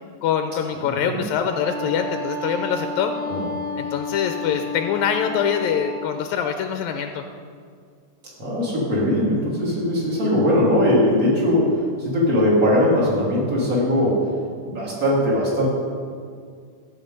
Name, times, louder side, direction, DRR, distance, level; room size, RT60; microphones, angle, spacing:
voice 1, 0.2-3.1 3.8-7.3, left 7 dB, 80° left, 6 dB, 2.0 m, -24 dB
voice 2, 0.9-1.2 3.3-3.5 8.4-14.2 14.6-15.7, left 1 dB, 30° right, -5 dB, 3.3 m, -20 dB
Wind instrument woodwind instrument, 1.5-6.2, left 3 dB, 80° right, 3.7 m, -31 dB
14.0 x 8.6 x 5.3 m, 2.1 s
omnidirectional pair, 3.4 m